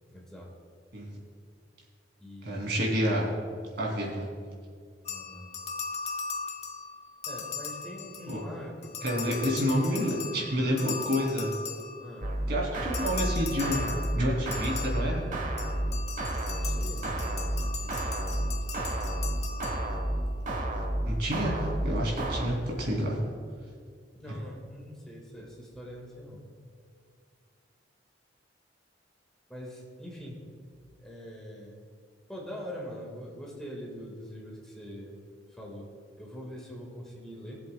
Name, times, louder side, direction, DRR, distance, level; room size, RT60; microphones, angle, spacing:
voice 1, 0.1-0.5 2.2-2.8 5.1-5.5 7.3-9.6 12.0-12.3 16.5-17.3 17.6-18.4 24.1-26.4 29.5-30.4 31.0-31.8 32.3-35.9 36.2-37.6, equal, 5° left, -3 dB, 1.7 m, -43 dB
voice 2, 2.4-3.3 3.8-4.3 8.3-8.4 9.0-11.5 12.5-15.2 21.1-23.2 24.3-24.4, equal, 65° right, -3 dB, 2.8 m, -29 dB
sound 1, 5.0-8.5 8.8-12.3 12.9-20.2, left 5 dB, 40° left, 0.7 m, -39 dB
sound 2, 12.2-22.5, right 1 dB, 45° right, 1.1 m, -31 dB
21.5 x 7.7 x 2.3 m, 2.1 s
head